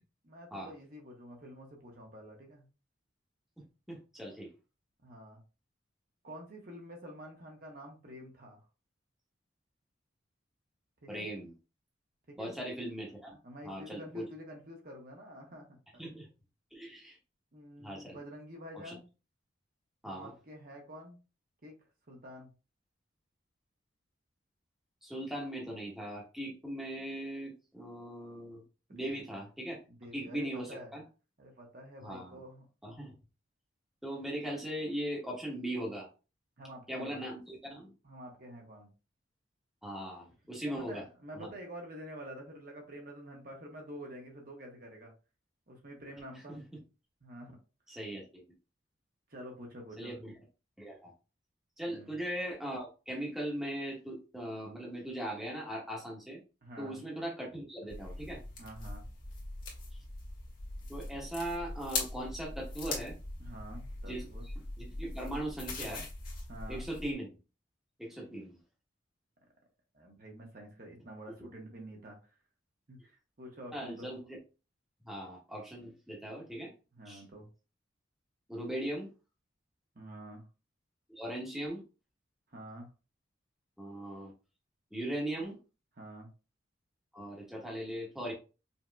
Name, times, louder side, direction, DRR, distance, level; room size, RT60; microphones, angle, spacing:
voice 1, 0.2-2.6 5.0-5.4 6.2-8.6 11.0-11.3 12.3-12.5 13.4-16.2 17.5-19.1 20.0-21.2 21.6-21.7 22.1-22.5 29.0-29.4 29.9-30.9 31.4-32.7 36.6-37.2 38.0-38.9 40.6-45.1 45.7-46.6 47.2-47.6 49.3-50.2 51.9-52.1 56.6-57.0 58.6-59.0 63.4-64.5 66.5-66.8 69.9-72.2 72.9-74.1 76.9-77.5 79.9-80.4 82.5-82.9 86.0-86.3, equal, 45° right, 1 dB, 1.0 m, -48 dB
voice 2, 3.9-4.5 11.1-11.5 12.4-13.4 13.6-14.3 16.0-16.3 16.7-17.2 17.8-18.2 18.8-18.9 20.0-20.3 25.0-28.6 28.9-29.8 30.1-31.0 32.0-32.4 32.8-33.1 34.0-36.1 36.9-37.9 39.8-41.0 41.3-41.5 46.5-46.6 47.9-48.4 50.0-50.3 50.8-51.1 51.8-56.4 56.8-58.4 60.9-63.2 64.1-66.0 66.7-67.3 68.0-68.6 73.7-74.4 75.0-76.7 77.1-77.2 78.5-79.1 81.2-81.8 83.8-84.3 84.9-85.6 87.1-88.3, right 1 dB, ahead, -3 dB, 1.1 m, -39 dB
sound 1, 57.9-67.1, left 2 dB, 45° left, 1.7 m, -41 dB
5.4 x 2.8 x 2.3 m, 0.32 s
head